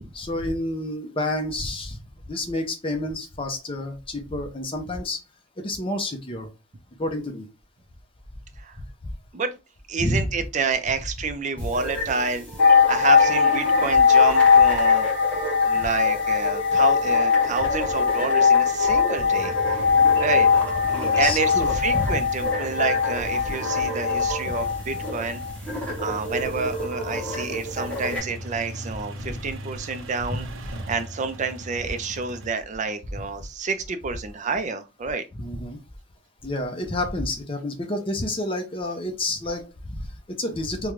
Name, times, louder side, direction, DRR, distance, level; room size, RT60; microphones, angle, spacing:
voice 1, 0.1-2.0 2.3-5.2 5.6-6.5 7.0-7.5 10.0-10.5 11.6-11.7 20.9-22.2 24.5-24.6 29.3-29.4 30.3-30.4 33.1-33.2 35.3-35.8 36.4-40.9, left 1 dB, 25° left, 0.7 m, -29 dB
voice 2, 9.9-12.5 12.9-15.1 15.7-19.9 20.2-20.5 20.8-25.4 25.8-30.5 30.9-35.2, right 4 dB, 40° right, 0.5 m, -29 dB
sound 1, 11.6-28.2, equal, 5° left, 1.1 m, -32 dB
sound 2, 12.6-25.1 25.4-25.5, left 6 dB, 60° left, 1.0 m, -20 dB
sound 3, 19.4-32.5, right 1 dB, 90° right, 0.7 m, -39 dB
3.7 x 2.2 x 3.1 m
head